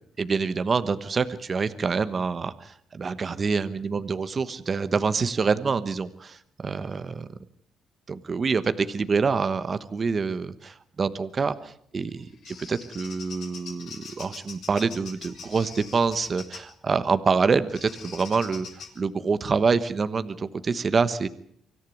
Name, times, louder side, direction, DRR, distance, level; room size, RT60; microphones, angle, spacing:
voice 1, 0.2-7.0 8.1-18.7 19.0-21.3, right 5 dB, 40° right, 12 dB, 1.2 m, -26 dB
Bird vocalization bird call bird song, 12.0-16.7 17.7-18.9, left 5 dB, 70° left, 6.3 m, -43 dB
25.0 x 14.0 x 9.4 m, 0.67 s
cardioid pair, 90°, 0 cm